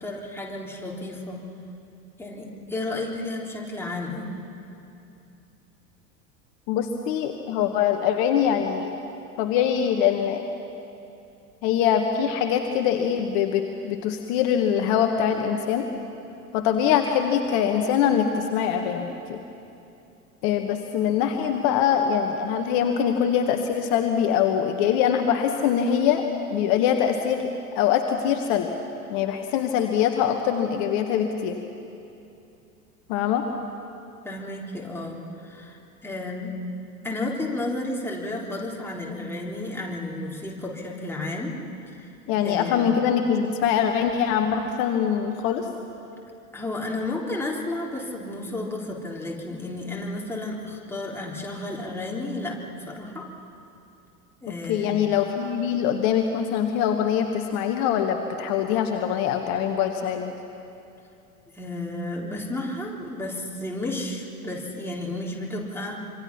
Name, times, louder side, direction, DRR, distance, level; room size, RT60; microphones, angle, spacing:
voice 1, 0.0-1.4 2.2-4.4 34.2-36.5 37.0-41.6 42.0-42.1 42.4-42.8 46.5-53.3 54.4-55.0 61.5-66.1, left 2 dB, 5° left, -2 dB, 3.6 m, -32 dB
voice 2, 6.7-9.0 9.4-10.4 11.6-15.9 16.5-19.4 20.4-26.2 26.5-27.5 27.7-28.7 29.1-31.6 33.1-33.4 42.3-45.7 54.7-60.3, left 8 dB, 45° left, 5 dB, 1.5 m, -23 dB
26.0 x 25.0 x 6.0 m, 2.8 s
figure-of-eight pair, 80°, 47 cm